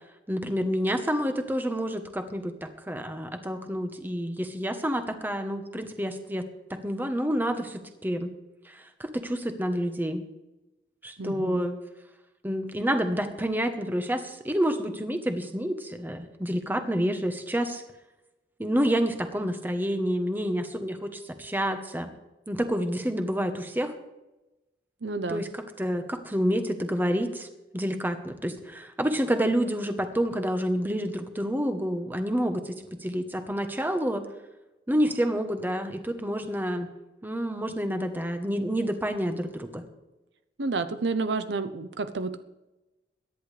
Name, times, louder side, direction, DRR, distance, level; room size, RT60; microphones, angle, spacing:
voice 1, 0.3-8.3 8.7-10.2 11.0-11.8 12.4-17.8 18.6-22.1 22.5-23.9 25.3-27.5 27.7-34.2 34.9-36.9 37.2-39.8, equal, 10° right, 7 dB, 1.1 m, -28 dB
voice 2, 11.2-11.6 25.0-25.4 40.6-42.4, right 3 dB, 75° right, 10 dB, 0.7 m, -30 dB
22.5 x 10.5 x 3.3 m, 1.0 s
head